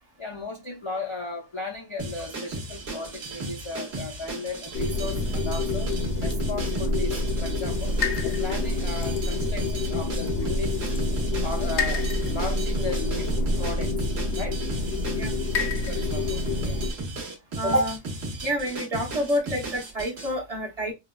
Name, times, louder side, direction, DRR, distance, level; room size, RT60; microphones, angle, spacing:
voice 1, 0.2-5.9 6.2-10.8 11.4-14.1 14.3-14.6 15.9-16.9, left 3 dB, 50° left, 0.3 m, -36 dB
sound 1, 2.0-20.3, right 2 dB, 60° right, 1.2 m, -35 dB
sound 2, 4.7-16.9, left 2 dB, 70° left, 0.9 m, -27 dB
voice 2, 17.6-18.0 18.4-20.9, equal, 35° right, 1.0 m, -27 dB
4.6 x 2.1 x 2.2 m
omnidirectional pair, 1.2 m